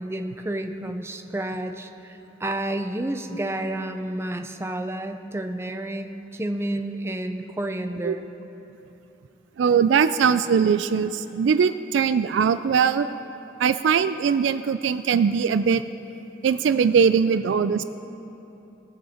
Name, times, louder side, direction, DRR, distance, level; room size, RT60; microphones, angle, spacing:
voice 1, 0.0-8.3, right 1 dB, 15° right, 6 dB, 0.5 m, -30 dB
voice 2, 9.6-13.1 13.6-15.8 16.4-17.8, right 6 dB, 80° right, 12 dB, 0.3 m, -21 dB
20.5 x 7.3 x 4.3 m, 3.0 s
head